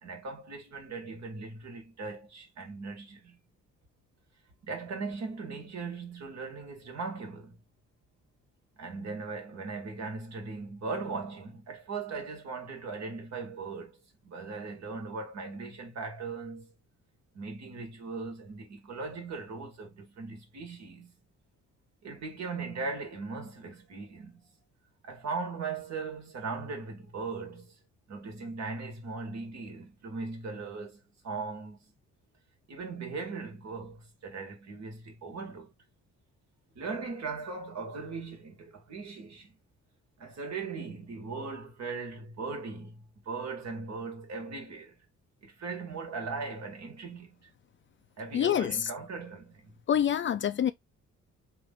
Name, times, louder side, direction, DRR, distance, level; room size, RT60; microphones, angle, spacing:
voice 1, 0.0-3.4 4.6-7.6 8.8-16.7 17.3-21.1 22.0-24.4 25.0-27.7 28.1-31.9 32.7-35.7 36.8-39.5 40.2-45.0 45.4-47.5 48.2-49.7, right 4 dB, 60° right, 1.8 m, -39 dB
voice 2, 48.3-48.9 49.9-50.7, left 9 dB, 40° left, 0.4 m, -26 dB
3.4 x 2.6 x 3.7 m
cardioid pair, 90°, 30 cm